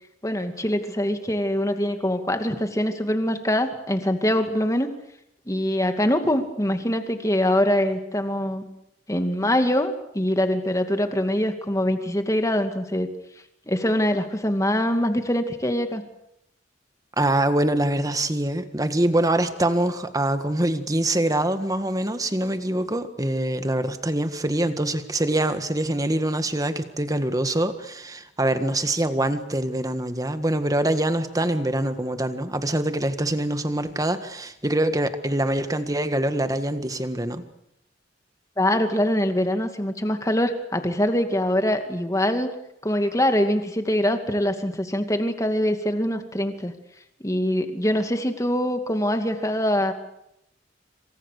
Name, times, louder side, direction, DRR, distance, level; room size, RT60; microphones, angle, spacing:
voice 1, 0.2-4.9 5.5-8.6 9.1-13.1 13.7-16.0 38.6-42.5 42.8-46.7 47.2-49.9, left 1 dB, 15° left, 6 dB, 2.4 m, -23 dB
voice 2, 17.2-37.4, right 1 dB, 20° right, 9 dB, 1.7 m, -24 dB
27.5 x 26.0 x 6.7 m, 0.82 s
head